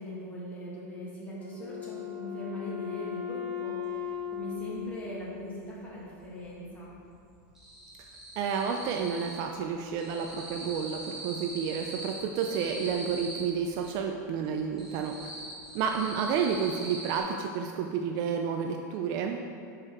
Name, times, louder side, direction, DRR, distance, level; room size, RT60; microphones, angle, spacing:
voice 1, 0.0-6.9, left 1 dB, 15° left, -6 dB, 1.7 m, -40 dB
Wind instrument woodwind instrument, 1.4-5.9, left 9 dB, 40° left, 1.5 m, -38 dB
sound 1, 4.0-4.1 4.4-5.6 5.9-6.6 6.9-9.5 9.8-13.9 14.4-17.2, right 1 dB, 5° right, 1.5 m, -42 dB
voice 2, 8.4-15.1 15.7-19.4, right 6 dB, 40° right, 4 dB, 0.4 m, -30 dB
6.5 x 5.0 x 4.3 m, 2.4 s
supercardioid pair, 155°, 10 cm